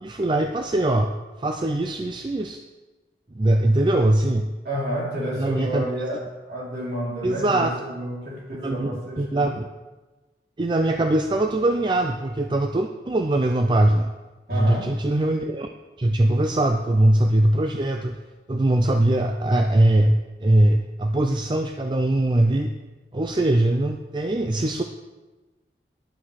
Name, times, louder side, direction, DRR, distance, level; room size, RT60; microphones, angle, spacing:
voice 1, 0.0-1.1 1.4-2.6 3.3-4.5 5.4-5.8 7.2-7.7 8.6-9.7 10.6-14.1 14.5-15.7 16.0-18.2 18.5-22.7 23.1-24.8, right 1 dB, 25° right, 5 dB, 0.4 m, -21 dB
voice 2, 4.6-9.5 14.5-14.9, equal, 60° right, -5 dB, 3.5 m, -30 dB
11.0 x 6.1 x 6.5 m, 1.2 s
head